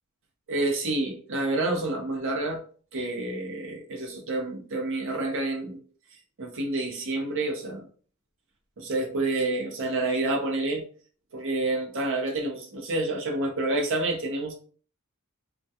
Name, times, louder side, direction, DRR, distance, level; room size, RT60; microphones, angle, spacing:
voice 1, 0.5-2.6 2.9-5.8 6.4-7.9 8.8-10.8 11.3-14.5, right 2 dB, 60° right, 1 dB, 0.6 m, -28 dB
2.2 x 2.1 x 2.7 m, 0.42 s
head